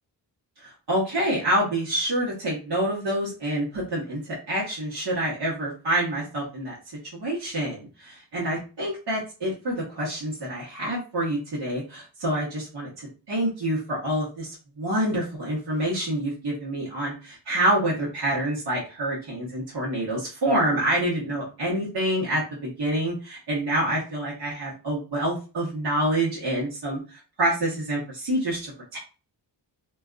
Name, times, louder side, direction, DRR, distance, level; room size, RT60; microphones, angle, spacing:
voice 1, 0.6-6.7 7.1-29.0, right 1 dB, 60° right, -6 dB, 1.1 m, -27 dB
2.5 x 2.3 x 2.4 m, 0.33 s
wide cardioid pair, 150°, 44 cm